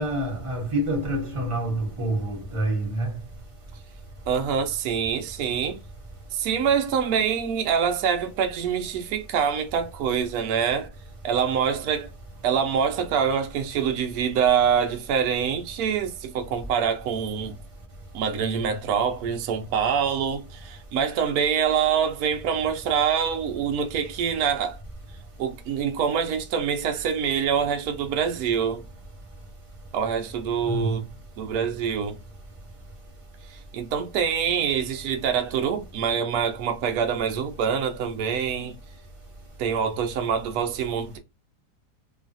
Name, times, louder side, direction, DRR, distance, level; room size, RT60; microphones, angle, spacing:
voice 1, 0.0-3.1 30.7-31.0, right 1 dB, 25° right, 0.7 m, -27 dB
voice 2, 4.3-5.8 6.3-10.9 11.2-12.1 12.4-17.6 18.1-24.8 25.4-28.8 29.9-31.0 31.4-32.2 33.5-38.8 39.6-41.2, right 7 dB, 70° right, 1.0 m, -25 dB
3.1 x 2.3 x 2.5 m
omnidirectional pair, 1.9 m